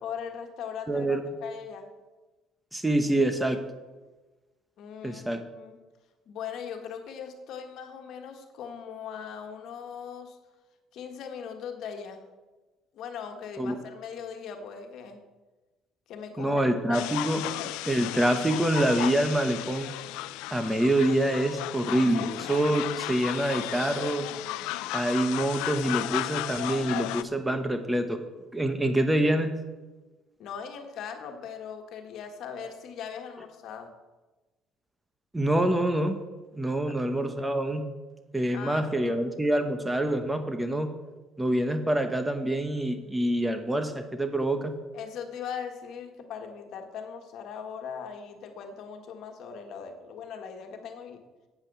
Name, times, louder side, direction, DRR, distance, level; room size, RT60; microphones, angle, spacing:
voice 1, 0.0-1.9 4.8-5.8 6.3-10.4 10.9-12.2 12.9-15.2 16.1-16.6 16.9-17.0 30.4-33.9 36.9-37.0 38.5-39.2 44.9-51.2, left 7 dB, 65° left, 5 dB, 1.7 m, -39 dB
voice 2, 0.9-1.2 2.7-3.6 5.0-5.4 13.6-13.7 16.4-17.4 17.9-19.9 20.5-24.3 24.9-28.2 28.5-29.5 35.3-36.2 36.5-37.8 38.3-40.9 41.4-44.7, right 1 dB, 10° right, 8 dB, 1.1 m, -26 dB
sound 1, 16.9-27.2, left 17 dB, 90° left, 0.4 m, -34 dB
8.9 x 8.5 x 6.9 m, 1.2 s
cardioid pair, 100°, 0 cm